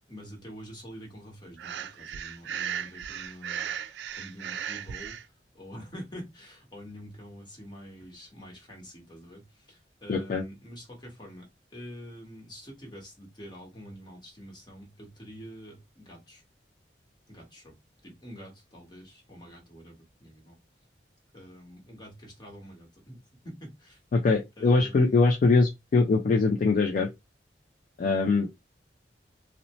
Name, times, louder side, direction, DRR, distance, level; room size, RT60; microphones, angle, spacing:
voice 1, 0.1-16.4 17.3-17.8 18.0-20.6 21.3-23.2 23.4-24.0 24.6-25.2 28.0-28.3, equal, 25° left, 1.1 m, -46 dB
Breathing, 1.6-5.2, right 8 dB, 70° right, 0.3 m, -36 dB
voice 2, 10.1-10.4 24.1-27.1 28.0-28.6, left 3 dB, 45° left, 0.3 m, -23 dB
2.6 x 2.1 x 2.9 m
head